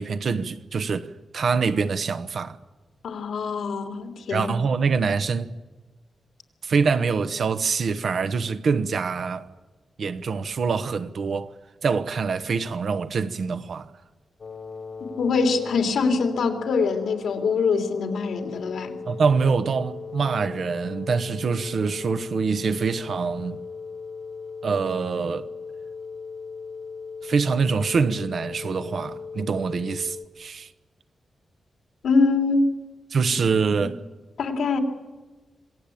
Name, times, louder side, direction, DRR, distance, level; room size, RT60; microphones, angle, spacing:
voice 1, 0.0-2.6 4.3-5.5 6.6-9.5 10.0-11.5 11.8-13.9 19.1-23.6 24.6-25.5 27.2-30.7 33.1-34.0, right 5 dB, 65° right, 1.1 m, -25 dB
voice 2, 3.0-4.5 15.0-18.9 32.0-32.7 34.4-34.8, left 4 dB, 90° left, 3.0 m, -23 dB
sound 1, 14.4-30.2, left 5 dB, 50° left, 1.6 m, -38 dB
26.5 x 18.5 x 8.6 m
wide cardioid pair, 105°, 0 cm